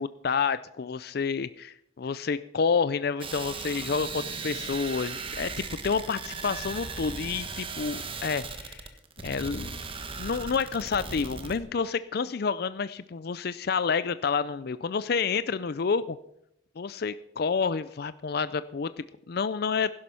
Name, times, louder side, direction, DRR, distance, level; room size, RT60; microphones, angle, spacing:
voice 1, 0.0-8.9 9.2-9.7 10.2-16.2 16.8-19.9, left 5 dB, 55° left, 15 dB, 0.4 m, -29 dB
sound 1, 3.2-11.6, right 4 dB, 30° right, 1.4 m, -37 dB
16.0 x 11.5 x 5.6 m, 0.77 s
head